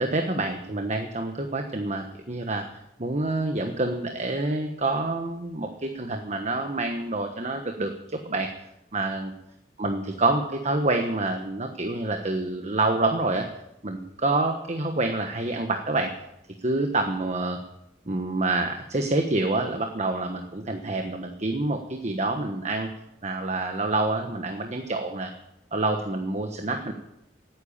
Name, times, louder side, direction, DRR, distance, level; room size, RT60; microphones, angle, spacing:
voice 1, 0.0-8.5 8.9-9.3 9.8-13.5 13.8-16.1 16.6-17.6 18.1-22.9 23.2-25.3 25.7-26.9, right 2 dB, 40° right, 5 dB, 1.2 m, -27 dB
13.5 x 9.2 x 8.9 m, 0.84 s
head